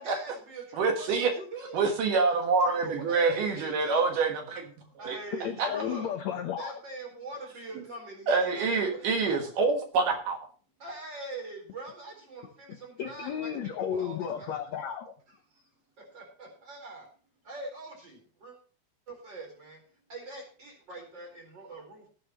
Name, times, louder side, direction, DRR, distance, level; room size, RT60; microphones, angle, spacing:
voice 1, 0.0-1.8 2.6-4.2 4.8-6.1 6.6-9.5 10.8-14.5 15.5-15.7 16.0-17.1 17.4-18.5 19.1-19.8 20.1-22.1, right 2 dB, 30° right, 2 dB, 4.6 m, -43 dB
voice 2, 0.8-1.3 1.7-4.6 5.0-5.2 5.6-5.7 8.3-10.4, right 4 dB, 65° right, 4 dB, 2.8 m, -26 dB
voice 3, 5.4-6.7 13.0-15.1, left 9 dB, 80° left, 7 dB, 1.5 m, -33 dB
18.5 x 9.1 x 3.0 m, 0.40 s
omnidirectional pair, 4.4 m